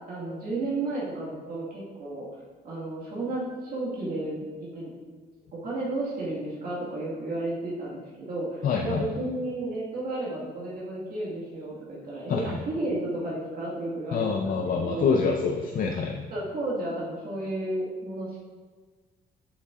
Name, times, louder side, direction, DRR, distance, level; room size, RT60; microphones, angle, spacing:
voice 1, 0.1-2.3 2.6-4.9 5.6-15.1 16.3-18.4, right 2 dB, 60° right, -6 dB, 1.8 m, -32 dB
voice 2, 8.6-9.1 12.3-12.5 14.1-16.2, left 5 dB, 55° left, 2 dB, 0.5 m, -26 dB
8.2 x 5.3 x 2.4 m, 1.5 s
cardioid pair, 110°, 17 cm